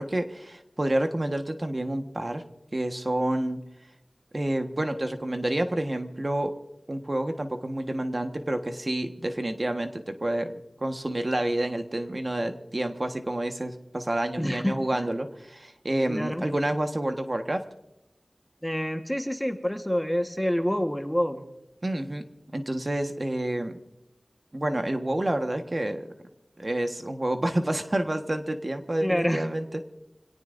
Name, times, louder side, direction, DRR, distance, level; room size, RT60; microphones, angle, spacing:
voice 1, 0.0-2.4 2.7-3.6 4.3-6.5 6.9-10.5 10.8-17.6 21.8-22.2 22.5-23.8 24.5-26.1 26.6-29.8, right 1 dB, 40° right, 6 dB, 1.3 m, -29 dB
voice 2, 14.4-14.8 16.1-16.4 18.6-21.4 29.0-29.4, equal, 5° left, 6 dB, 1.4 m, -27 dB
26.5 x 18.0 x 2.6 m, 0.90 s
wide cardioid pair, 50°, 0 cm